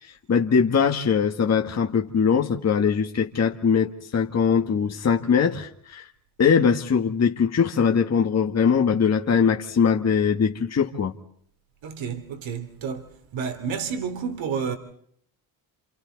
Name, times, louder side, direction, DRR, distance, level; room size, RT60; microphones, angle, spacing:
voice 1, 0.3-6.0 6.4-11.1, left 6 dB, 35° left, 1.8 m, -21 dB
voice 2, 11.8-13.0 13.3-14.8, right 6 dB, 70° right, 3.2 m, -30 dB
29.5 x 28.0 x 4.1 m
cardioid pair, 115°, 48 cm